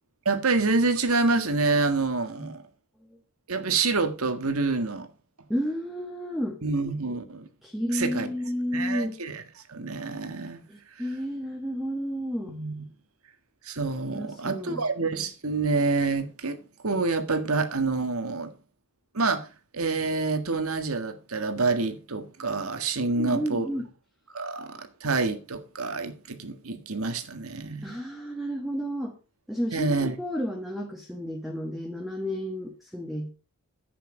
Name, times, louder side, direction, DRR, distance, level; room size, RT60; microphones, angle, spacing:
voice 1, 0.2-2.6 3.5-5.1 6.6-7.5 7.9-8.3 8.7-9.4 9.7-10.6 12.5-12.8 13.6-18.5 19.1-19.5 19.7-23.7 24.3-28.0 29.7-30.1, right 3 dB, 75° right, 1.6 m, -27 dB
voice 2, 5.5-6.6 7.6-9.2 10.7-12.6 14.1-14.8 23.1-23.9 27.8-29.1 29.5-33.3, equal, ahead, 1.5 m, -31 dB
10.5 x 8.5 x 5.0 m
head